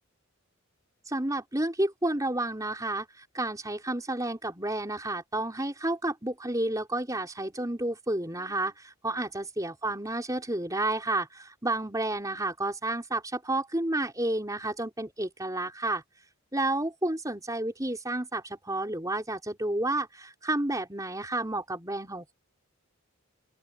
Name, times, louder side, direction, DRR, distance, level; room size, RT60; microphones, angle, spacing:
voice 1, 1.1-16.0 16.5-22.3, right 2 dB, 15° right, 4.6 m, -31 dB
open air
head